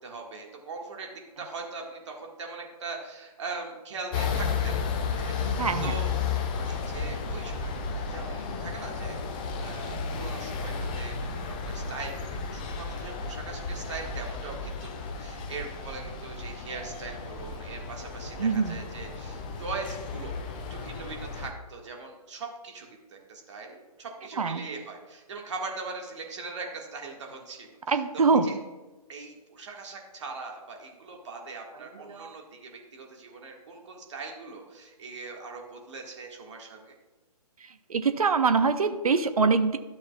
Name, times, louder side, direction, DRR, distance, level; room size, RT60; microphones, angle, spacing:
voice 1, 0.0-4.7 5.1-6.1 6.6-9.2 9.6-20.4 20.7-28.6 29.1-36.9, right 4 dB, 45° right, 1 dB, 1.7 m, -41 dB
sound 1, 4.1-21.5, left 5 dB, 15° left, 0.3 m, -33 dB
voice 2, 5.6-5.9 18.4-18.8 24.4-24.6 27.9-28.5 32.1-32.3 37.9-39.8, right 4 dB, 65° right, 10 dB, 0.6 m, -24 dB
12.0 x 6.4 x 2.3 m, 1.2 s
figure-of-eight pair, 135°, 20 cm